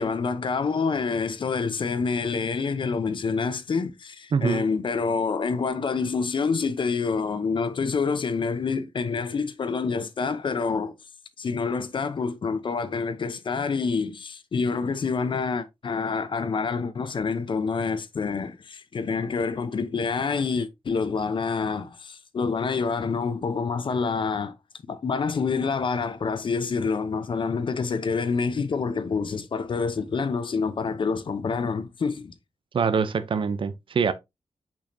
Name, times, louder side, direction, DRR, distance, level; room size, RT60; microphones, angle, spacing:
voice 1, 0.0-10.9 11.4-24.5 24.9-32.3, left 5 dB, 55° left, 0.8 m, -27 dB
voice 2, 4.3-4.6 32.7-34.1, right 6 dB, 60° right, 0.6 m, -24 dB
6.3 x 6.2 x 2.7 m
wide cardioid pair, 120°, 10 cm